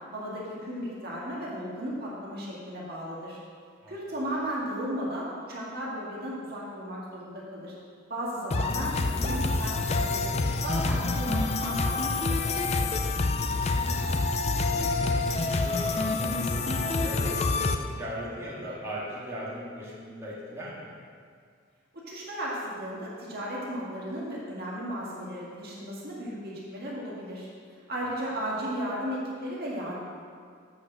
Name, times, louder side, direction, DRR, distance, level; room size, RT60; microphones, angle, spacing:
voice 1, 0.1-3.4 3.9-7.8 8.1-12.7 21.9-27.5 27.9-30.0, equal, 50° right, -5 dB, 1.9 m, -35 dB
sound 1, 8.5-17.8, left 3 dB, 30° left, 0.4 m, -27 dB
voice 2, 13.7-14.1 14.5-21.0, equal, 15° right, -8 dB, 1.8 m, -39 dB
8.2 x 6.3 x 6.2 m, 2.1 s
head